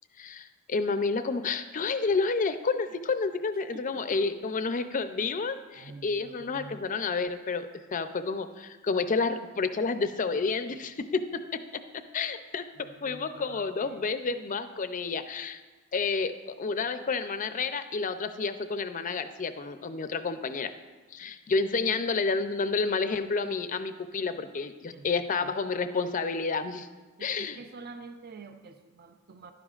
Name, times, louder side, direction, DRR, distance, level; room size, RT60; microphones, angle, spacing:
voice 1, 0.2-11.6 11.9-15.6 15.9-20.7 21.1-26.9 27.2-27.6, left 4 dB, 40° left, 10 dB, 0.5 m, -30 dB
voice 2, 3.7-4.2 5.7-6.8 12.8-14.0 24.9-25.1 25.4-25.6 27.2-29.5, right 3 dB, 45° right, 7 dB, 0.5 m, -47 dB
12.0 x 11.0 x 2.4 m, 1.3 s
head